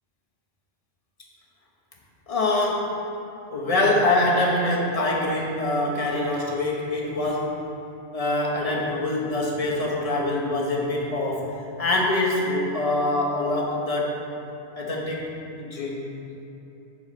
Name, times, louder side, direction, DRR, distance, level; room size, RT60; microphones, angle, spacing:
voice 1, 2.3-3.0 3.5-7.6 8.1-14.2 14.8-15.3 15.6-16.2, left 2 dB, 35° left, -3 dB, 0.9 m, -24 dB
7.1 x 4.7 x 4.1 m, 3.0 s
omnidirectional pair, 1.2 m